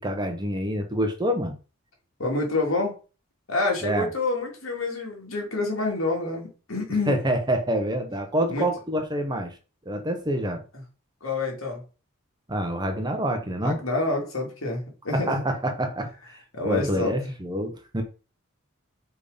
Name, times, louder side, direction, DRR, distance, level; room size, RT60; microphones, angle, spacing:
voice 1, 0.0-1.6 3.8-4.1 7.1-9.5 9.9-10.6 12.5-13.8 15.1-16.1 16.6-18.0, right 1 dB, 20° right, 1.2 m, -26 dB
voice 2, 2.2-3.0 3.5-7.2 8.5-8.7 11.2-11.8 13.6-15.4 16.5-17.1, left 2 dB, 75° left, 2.8 m, -27 dB
5.5 x 4.7 x 5.1 m
head